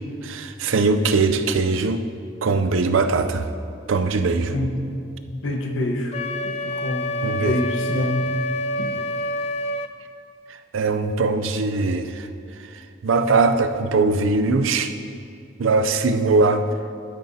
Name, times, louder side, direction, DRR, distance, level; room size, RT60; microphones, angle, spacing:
voice 1, 0.2-2.0 2.4-3.5 3.9-4.5 7.2-7.5 10.5-12.3 12.6-14.9 15.6-16.7, right 3 dB, 70° right, 8 dB, 0.5 m, -21 dB
voice 2, 5.3-8.3 8.8-8.9, left 1 dB, 65° left, 1 dB, 1.1 m, -26 dB
Wind instrument woodwind instrument, 6.1-9.9, left 1 dB, 30° left, 0.3 m, -27 dB
12.5 x 9.7 x 2.8 m, 2.4 s
head